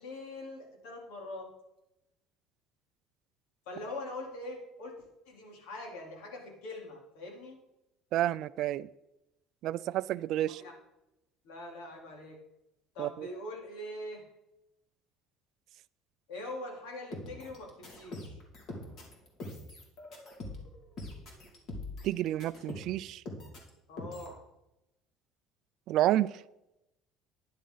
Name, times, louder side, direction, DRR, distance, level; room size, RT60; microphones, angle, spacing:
voice 1, 0.0-1.5 3.7-7.6 10.6-10.7 11.4-12.4 12.9-14.2 16.3-18.4 23.9-24.4, left 1 dB, 85° left, 3.6 m, -43 dB
voice 2, 8.1-8.9 9.6-10.6 13.0-13.3 22.0-23.2 25.9-26.4, right 13 dB, 50° right, 0.3 m, -30 dB
sound 1, 17.1-23.0 23.3-23.7 24.0-24.4, left 2 dB, 40° left, 2.4 m, -43 dB
12.0 x 10.5 x 4.0 m
cardioid pair, 165°, 0 cm